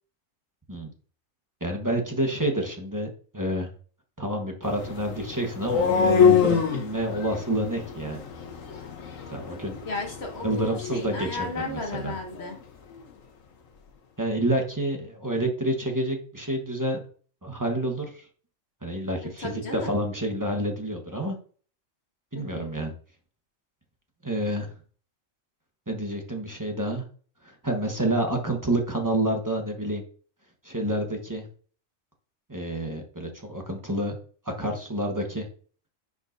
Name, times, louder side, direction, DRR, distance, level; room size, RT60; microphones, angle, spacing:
voice 1, 1.6-3.1 3.3-3.7 4.2-8.2 9.3-9.8 10.4-12.1 14.2-17.0 17.4-18.2 18.8-21.4 22.3-22.9 24.2-24.7 25.9-27.0 27.4-30.0 30.6-31.4 32.5-34.2 34.6-35.5, right 1 dB, 15° right, 2 dB, 1.1 m, -28 dB
sound 1, 4.6-12.6, left 6 dB, 75° left, 1.4 m, -26 dB
voice 2, 9.8-12.6 19.2-19.9 22.3-22.7, left 3 dB, 55° left, 3 dB, 1.3 m, -34 dB
10.0 x 5.1 x 2.6 m, 0.43 s
omnidirectional pair, 1.4 m